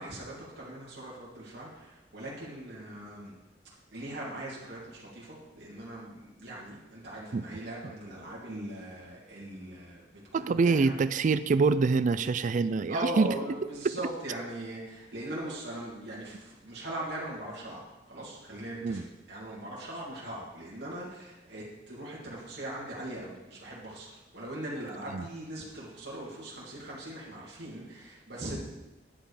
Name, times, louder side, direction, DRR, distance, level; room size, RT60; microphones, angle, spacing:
voice 1, 0.0-3.3 3.9-11.0 12.9-17.8 18.1-28.6, right 1 dB, 65° right, -6 dB, 2.6 m, -40 dB
voice 2, 10.3-13.3 18.8-19.0 25.1-25.2, right 4 dB, 45° right, 13 dB, 0.4 m, -25 dB
9.9 x 7.8 x 4.9 m, 1.0 s
head